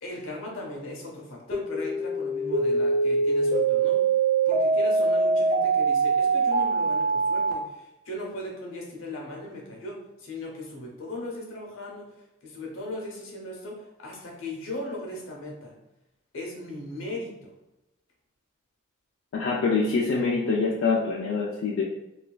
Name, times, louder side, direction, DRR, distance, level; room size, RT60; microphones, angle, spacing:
voice 1, 0.0-4.0 4.5-15.8 16.3-17.6, left 1 dB, 85° left, -1 dB, 0.8 m, -38 dB
sound 1, 1.5-7.5, right 4 dB, 45° right, 0.4 m, -23 dB
voice 2, 19.3-21.8, left 4 dB, 70° left, -3 dB, 0.4 m, -25 dB
3.1 x 2.3 x 2.3 m, 0.94 s
head